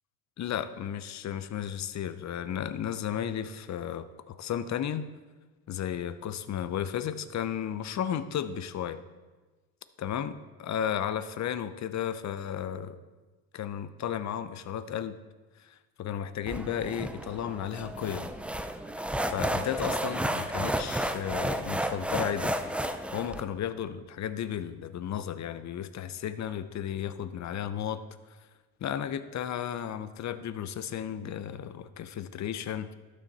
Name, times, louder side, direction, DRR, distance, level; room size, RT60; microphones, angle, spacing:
voice 1, 0.4-5.1 5.7-9.0 10.0-13.0 13.5-15.1 15.6-18.3 19.0-22.5 23.1-28.0 28.8-32.9, left 9 dB, 40° left, 13 dB, 0.7 m, -34 dB
sound 1, 16.5-23.4, right 1 dB, 5° right, 0.5 m, -32 dB
12.0 x 6.6 x 4.2 m, 1.3 s
hypercardioid pair, 70°, 43 cm